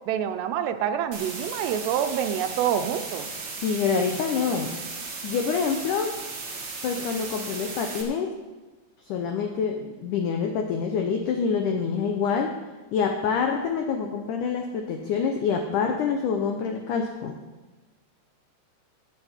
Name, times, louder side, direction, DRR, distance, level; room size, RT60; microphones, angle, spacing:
voice 1, 0.1-3.3, right 9 dB, 85° right, 9 dB, 2.9 m, -27 dB
sound 1, 1.1-8.0, right 4 dB, 65° right, 1.1 m, -36 dB
voice 2, 3.6-4.7 5.2-6.2 6.8-8.4 9.1-12.5 12.9-17.4, left 6 dB, 90° left, 4 dB, 1.7 m, -26 dB
15.5 x 8.7 x 4.4 m, 1.2 s
omnidirectional pair, 4.8 m